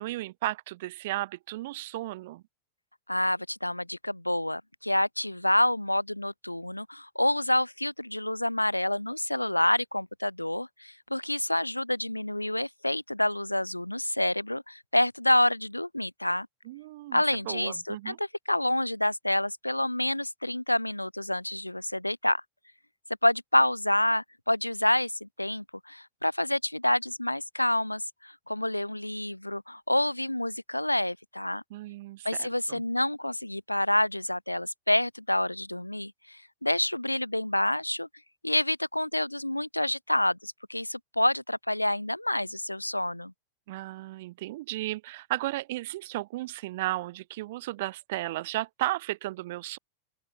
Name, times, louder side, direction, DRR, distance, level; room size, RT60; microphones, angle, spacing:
voice 1, 0.0-2.4 16.6-18.2 31.7-32.8 43.7-49.8, right 17 dB, 55° right, 1.3 m, -34 dB
voice 2, 3.1-16.5 17.1-22.4 23.2-31.6 32.2-38.1 38.4-43.3, left 1 dB, 85° left, 0.6 m, -28 dB
open air
figure-of-eight pair, 90°, 0 cm